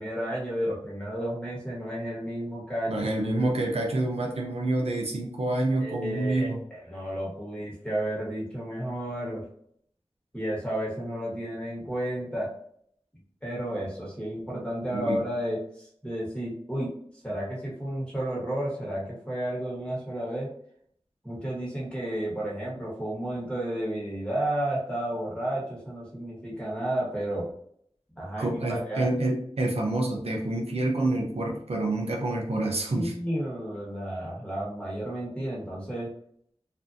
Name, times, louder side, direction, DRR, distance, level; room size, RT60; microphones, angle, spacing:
voice 1, 0.0-3.3 5.8-9.4 10.3-12.5 13.4-16.9 17.2-20.5 21.2-27.5 28.2-29.1 32.9-36.1, right 1 dB, 10° left, -5 dB, 1.3 m, -32 dB
voice 2, 2.9-6.6 14.9-15.2 28.4-33.1, right 2 dB, 75° right, -1 dB, 0.6 m, -27 dB
2.6 x 2.4 x 2.5 m, 0.65 s
wide cardioid pair, 55°, 10 cm